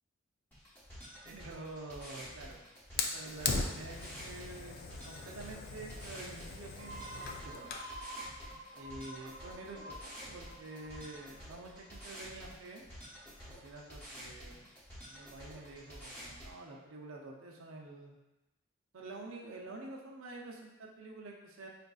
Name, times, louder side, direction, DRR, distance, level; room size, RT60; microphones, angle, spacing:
sound 1, 0.5-16.5, equal, 10° left, 0.9 m, -50 dB
voice 1, 1.2-2.6 2.9-4.8 5.0-7.7 8.7-12.8 13.5-14.7 15.1-18.2 18.9-21.7, right 2 dB, 80° right, 0 dB, 0.6 m, -48 dB
Fire, 3.0-7.9, left 4 dB, 50° left, 0.3 m, -39 dB
sound 2, 6.8-12.2, right 1 dB, 15° right, 0.8 m, -49 dB
5.1 x 2.5 x 2.3 m, 1.0 s
head